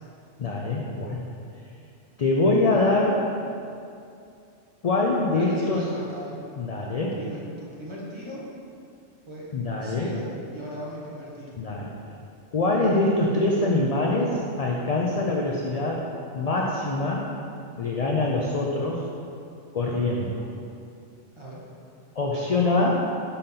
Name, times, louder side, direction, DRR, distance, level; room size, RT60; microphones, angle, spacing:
voice 1, 0.4-1.3 2.2-3.2 4.8-5.9 6.6-7.2 9.5-10.1 11.6-11.9 12.5-16.1 16.3-17.3 17.8-19.0 19.7-20.4 22.2-23.1, left 2 dB, 55° left, -2 dB, 0.4 m, -24 dB
voice 2, 5.3-6.4 6.8-8.5 9.2-9.5 9.8-11.5 21.4-21.6, equal, 25° right, -6 dB, 1.1 m, -38 dB
5.1 x 4.2 x 5.6 m, 2.5 s
omnidirectional pair, 1.2 m